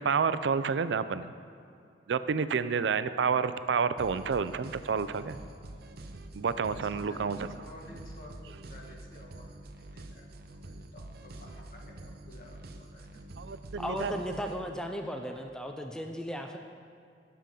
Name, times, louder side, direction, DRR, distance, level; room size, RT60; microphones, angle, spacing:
voice 1, 0.0-1.3 2.1-5.4 6.3-7.5 13.4-14.1, right 6 dB, 90° right, 13 dB, 0.4 m, -29 dB
sound 1, 4.0-14.6, right 1 dB, 60° right, 0.7 m, -47 dB
voice 2, 6.7-10.2 10.5-13.2, left 1 dB, 55° left, -1 dB, 1.6 m, -52 dB
voice 3, 13.8-16.6, equal, 5° left, 3 dB, 0.5 m, -36 dB
18.5 x 7.0 x 3.8 m, 2.4 s
head